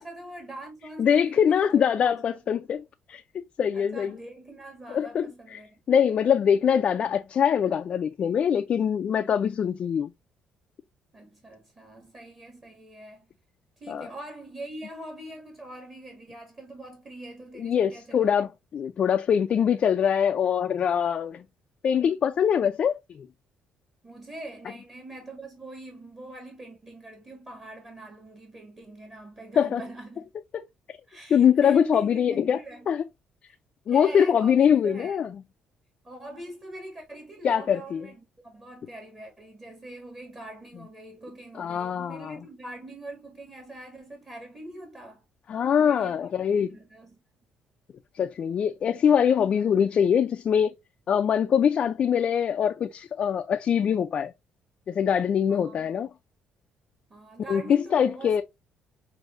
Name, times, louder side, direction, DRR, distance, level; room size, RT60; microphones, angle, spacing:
voice 1, 0.0-2.2 3.7-5.7 11.1-13.3 13.8-18.4 24.0-30.3 31.1-32.9 33.5-33.6 33.9-35.3 36.0-45.3 45.8-46.2 46.6-47.2 49.5-49.6 55.5-56.1 57.1-58.4, right 1 dB, 25° right, 1.4 m, -43 dB
voice 2, 1.0-3.2 3.6-4.2 4.9-5.3 5.5-5.6 5.9-10.1 13.9-14.1 17.6-21.4 21.8-23.3 29.6-29.8 30.5-30.6 31.3-32.6 32.9-33.0 33.9-35.3 37.4-38.0 41.6-42.4 45.5-46.7 48.1-50.7 51.1-54.3 54.9-56.1 57.5-58.4, left 8 dB, 45° left, 0.3 m, -23 dB
6.2 x 2.6 x 2.5 m
cardioid pair, 125°, 3 cm